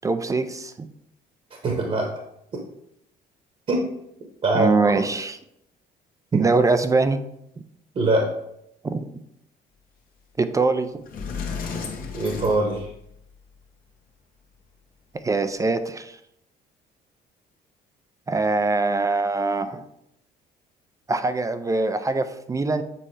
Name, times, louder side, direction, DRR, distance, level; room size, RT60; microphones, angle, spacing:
voice 1, 0.0-0.9 4.5-5.4 6.3-7.2 8.8-9.1 10.4-10.9 15.2-16.2 18.3-19.8 21.1-22.8, right 3 dB, 20° right, 10 dB, 0.4 m, -22 dB
voice 2, 1.6-2.1 3.7-3.8 4.4-5.0 7.9-8.3 12.1-12.9, right 2 dB, 40° right, 1 dB, 1.1 m, -22 dB
Sliding door, 10.6-10.7 11.1-13.3, left 5 dB, 55° left, 1.0 m, -33 dB
7.6 x 4.2 x 3.3 m, 0.78 s
cardioid pair, 110°, 17 cm